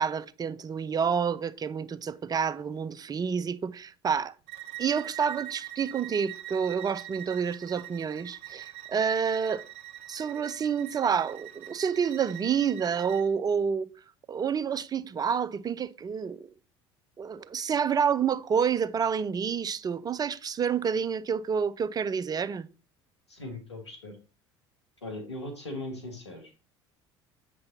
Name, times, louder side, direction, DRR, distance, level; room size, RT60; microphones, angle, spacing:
voice 1, 0.0-4.3 4.8-9.6 10.1-13.9 14.3-16.5 17.2-22.7, right 7 dB, 30° right, 0.6 m, -28 dB
Bowed string instrument, 4.5-13.3, right 14 dB, 50° right, 0.9 m, -43 dB
voice 2, 23.3-24.2 25.0-26.5, left 1 dB, 85° left, 1.8 m, -39 dB
7.9 x 5.4 x 4.1 m
figure-of-eight pair, 65°, 14 cm